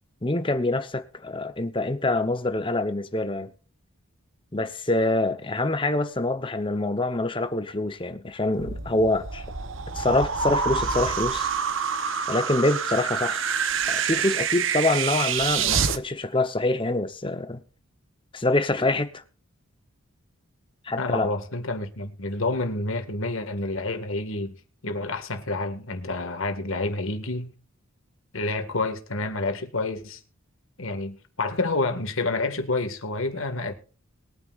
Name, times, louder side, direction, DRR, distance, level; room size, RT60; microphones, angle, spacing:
voice 1, 0.2-3.5 4.5-9.4 9.9-11.5 12.3-13.4 13.9-17.6 18.3-19.2 20.8-21.3, left 2 dB, 25° left, 0.9 m, -25 dB
sound 1, 8.6-16.0, right 6 dB, 65° right, 0.9 m, -27 dB
voice 2, 21.0-24.5 24.8-27.5 28.3-30.2 30.8-33.7, left 2 dB, 70° left, 2.0 m, -29 dB
21.5 x 9.4 x 2.5 m
head